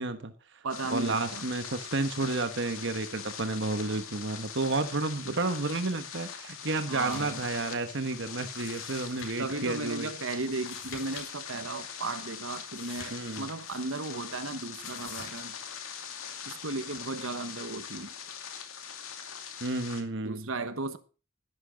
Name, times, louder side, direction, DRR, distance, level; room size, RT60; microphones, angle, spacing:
voice 1, 0.0-10.1 13.1-13.4 19.6-20.5, right 3 dB, 60° right, 1.1 m, -31 dB
voice 2, 0.6-1.4 5.2-5.4 6.9-7.4 9.4-15.6 16.5-18.1 20.2-21.0, right 3 dB, 80° right, 1.3 m, -35 dB
sound 1, 0.7-20.0, left 7 dB, 85° left, 2.3 m, -42 dB
sound 2, 6.9-7.4 7.7-7.8 8.5-9.5 10.5-11.3 11.5-11.6 12.7-13.8 14.8-15.4, left 5 dB, 70° left, 4.9 m, -46 dB
11.5 x 11.0 x 5.1 m
head